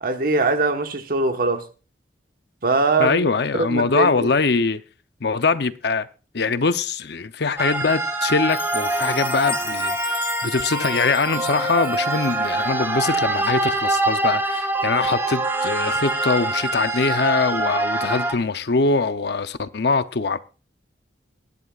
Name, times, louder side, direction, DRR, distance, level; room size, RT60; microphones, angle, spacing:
voice 1, 0.0-1.6 2.6-4.3, right 3 dB, 55° right, 1.3 m, -22 dB
voice 2, 3.0-4.8 5.2-6.1 6.3-10.1 10.4-20.4, left 4 dB, 65° left, 0.7 m, -22 dB
sound 1, 7.6-18.4, right 2 dB, 15° right, 1.5 m, -24 dB
Chime, 8.5-12.7, left 7 dB, 30° left, 1.1 m, -35 dB
21.0 x 11.0 x 2.4 m
head